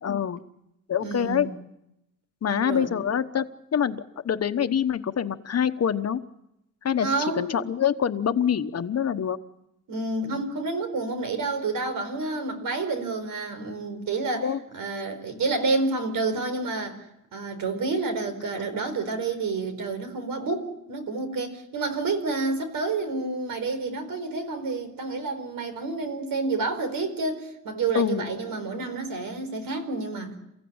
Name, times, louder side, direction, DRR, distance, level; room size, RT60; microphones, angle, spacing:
voice 1, 0.0-0.4 0.9-1.5 2.4-3.5 3.7-6.2 6.8-7.1 7.4-9.4 14.4-14.6 27.9-28.3, left 8 dB, 50° left, 10 dB, 1.1 m, -25 dB
voice 2, 1.0-1.5 2.5-2.9 7.0-7.6 9.9-14.5 14.7-17.0 17.3-30.4, right 3 dB, 85° right, 7 dB, 4.6 m, -29 dB
29.0 x 15.5 x 8.8 m, 0.84 s
wide cardioid pair, 145°, 33 cm